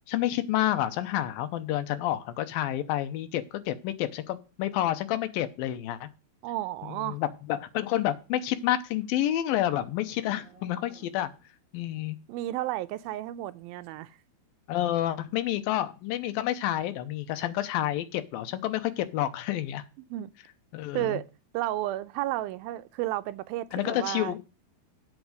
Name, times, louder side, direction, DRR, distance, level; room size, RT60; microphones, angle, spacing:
voice 1, 0.1-6.1 7.0-11.3 11.7-12.2 14.7-19.8 20.7-21.2 23.7-24.4, left 13 dB, 85° left, 2.6 m, -29 dB
voice 2, 6.4-7.2 12.3-14.2 20.1-20.3 20.9-21.3 21.5-24.3, right 15 dB, 85° right, 2.5 m, -32 dB
Livestock farm animals working animals, 8.3-11.5, right 3 dB, 35° right, 3.1 m, -57 dB
8.2 x 7.2 x 6.6 m
omnidirectional pair, 4.2 m